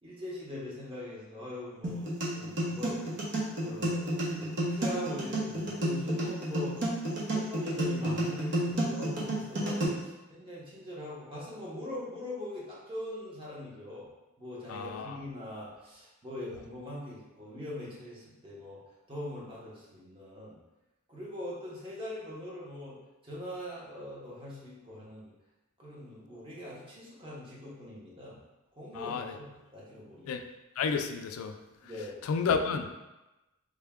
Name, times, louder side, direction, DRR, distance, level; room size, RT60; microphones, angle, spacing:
voice 1, 0.0-3.0 3.6-6.8 7.3-14.1 14.4-18.8 19.1-20.6 21.1-23.0 23.2-25.3 25.8-28.4 28.8-30.4 31.8-32.1, left 1 dB, 25° right, -6 dB, 0.9 m, -42 dB
sound 1, 1.8-9.8, right 1 dB, 55° right, 0.8 m, -31 dB
voice 2, 14.7-15.2 28.9-29.3 30.3-30.4 30.8-31.5 32.3-32.9, left 5 dB, 80° left, 6 dB, 0.3 m, -31 dB
3.4 x 2.2 x 3.5 m, 1.0 s
head